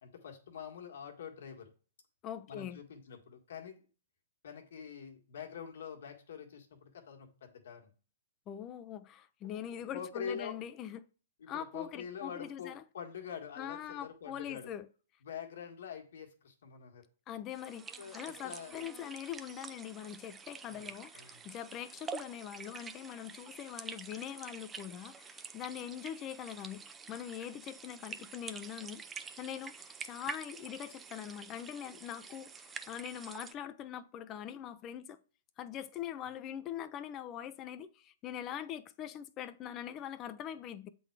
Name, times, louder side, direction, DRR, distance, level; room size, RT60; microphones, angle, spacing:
voice 1, 0.0-1.7 2.5-3.8 4.4-7.9 9.5-10.6 11.4-14.7 15.2-17.0 18.0-18.8 20.7-21.4, left 7 dB, 70° left, 1.7 m, -45 dB
voice 2, 2.2-2.8 8.5-11.0 11.5-12.8 13.6-14.9 17.3-29.0 29.4-35.2 35.6-40.9, left 10 dB, 30° left, 0.6 m, -43 dB
sound 1, 17.5-33.5, right 5 dB, 15° right, 0.5 m, -48 dB
7.9 x 3.9 x 4.7 m
hypercardioid pair, 135°, 0 cm